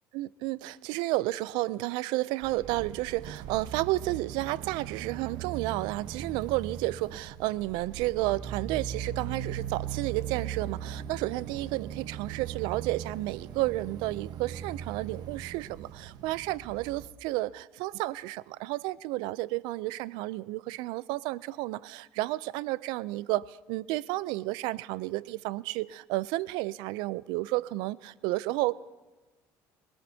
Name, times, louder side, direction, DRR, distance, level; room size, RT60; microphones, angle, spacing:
voice 1, 0.1-28.8, right 18 dB, 80° right, 20 dB, 0.4 m, -32 dB
sound 1, 2.4-17.1, right 9 dB, 65° right, 1.0 m, -39 dB
24.5 x 17.5 x 2.8 m, 1.2 s
supercardioid pair, 90°, 8 cm